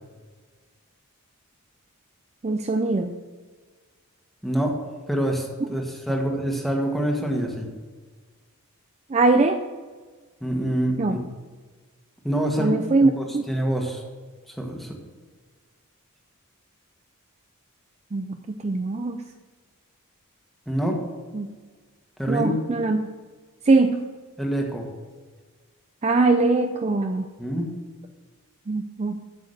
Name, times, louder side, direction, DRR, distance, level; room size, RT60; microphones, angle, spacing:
voice 1, 2.4-3.2 9.1-9.6 11.0-11.2 12.6-13.4 18.1-19.2 21.3-21.5 22.3-23.0 23.7-24.0 26.0-27.3 28.7-29.2, right 3 dB, 30° right, 6 dB, 0.4 m, -22 dB
voice 2, 4.4-4.8 5.1-7.7 10.4-11.2 12.2-14.0 14.5-15.0 20.7-21.0 22.2-22.6 24.4-24.9 27.4-27.7, right 1 dB, ahead, 1 dB, 1.4 m, -26 dB
8.0 x 7.2 x 6.6 m, 1.4 s
head